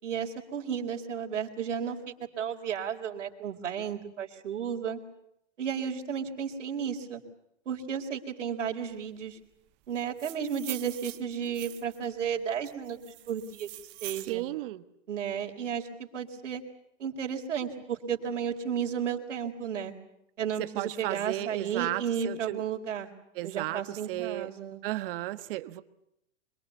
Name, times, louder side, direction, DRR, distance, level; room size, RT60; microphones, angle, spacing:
voice 1, 0.0-5.0 5.6-7.2 7.7-9.4 9.9-13.7 14.0-14.4 15.1-16.6 17.0-19.9 20.4-23.1 23.4-24.8, right 7 dB, 90° right, 1 dB, 4.2 m, -33 dB
sound 1, 10.0-12.0 12.6-14.3, right 19 dB, 30° right, 1.3 m, -43 dB
voice 2, 14.3-14.8 20.7-22.6 23.3-24.5 24.8-25.8, right 16 dB, 50° right, 12 dB, 1.5 m, -34 dB
26.0 x 22.5 x 8.3 m, 0.79 s
hypercardioid pair, 150°, 35 cm